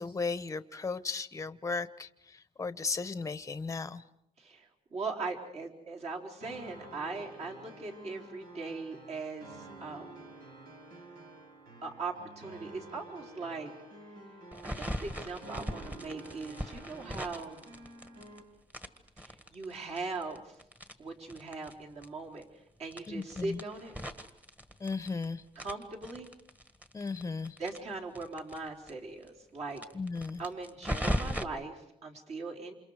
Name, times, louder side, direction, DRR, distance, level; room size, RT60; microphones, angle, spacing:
voice 1, 0.0-2.1 2.6-4.0 23.1-23.6 24.8-25.4 26.9-27.5 29.9-30.4, left 4 dB, 20° left, 14 dB, 1.0 m, -35 dB
voice 2, 4.4-10.3 11.8-13.7 14.8-17.7 19.2-20.6 21.0-23.9 25.6-26.3 27.6-29.8 30.4-32.7, right 3 dB, 45° right, 0 dB, 4.0 m, -40 dB
sound 1, 6.4-18.4, right 1 dB, 85° right, 6.0 m, -50 dB
sound 2, 14.5-18.4 18.7-21.7 22.0-22.1 22.4-22.5 22.9-25.2 25.5-28.6 28.9-29.0 29.2-29.3 29.7-31.4, equal, 10° right, 1.7 m, -38 dB
28.5 x 27.5 x 4.9 m, 0.76 s
cardioid pair, 120°, 15 cm